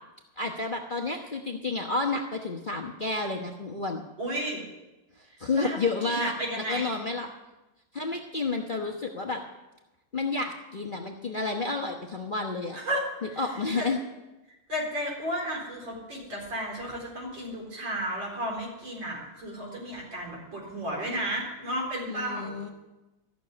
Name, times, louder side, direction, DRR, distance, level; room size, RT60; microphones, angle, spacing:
voice 1, 0.4-4.0 5.4-6.3 6.7-7.3 7.9-9.4 10.1-12.8 13.2-14.0 22.1-22.7, left 3 dB, 35° left, 1 dB, 0.9 m, -30 dB
voice 2, 4.2-4.6 5.5-6.9 12.7-13.9 14.7-22.6, equal, 75° right, -2 dB, 4.9 m, -33 dB
14.5 x 6.9 x 9.5 m, 1.0 s
omnidirectional pair, 2.0 m